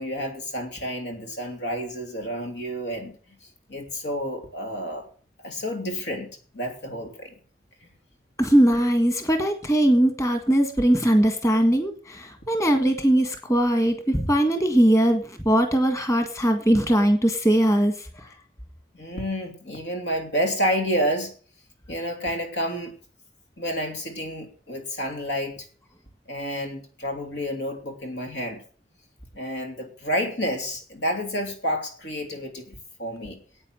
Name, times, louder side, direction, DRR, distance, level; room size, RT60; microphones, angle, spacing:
voice 1, 0.0-3.2 3.7-5.0 5.4-6.3 6.5-7.3 7.8-7.9 18.9-21.3 21.9-22.9 23.6-25.6 26.3-28.6 29.3-33.4, equal, 90° left, 4 dB, 3.1 m, -29 dB
voice 2, 8.4-18.1, right 1 dB, 20° left, 6 dB, 1.6 m, -20 dB
9.7 x 8.9 x 7.7 m, 0.42 s
head